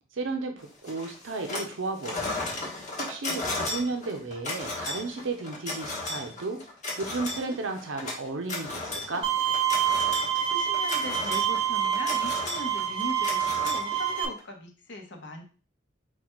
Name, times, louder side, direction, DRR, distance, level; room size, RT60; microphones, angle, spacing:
voice 1, 0.1-2.7 3.0-6.6 7.0-9.3, right 3 dB, 75° right, 5 dB, 0.6 m, -34 dB
sound 1, 0.9-1.7 2.0-14.4, left 2 dB, 35° left, 1.0 m, -35 dB
Bowed string instrument, 9.2-14.2, right 9 dB, 25° right, 0.4 m, -27 dB
voice 2, 10.4-15.4, left 1 dB, 65° left, 3 dB, 0.9 m, -39 dB
4.0 x 2.3 x 4.4 m, 0.36 s
head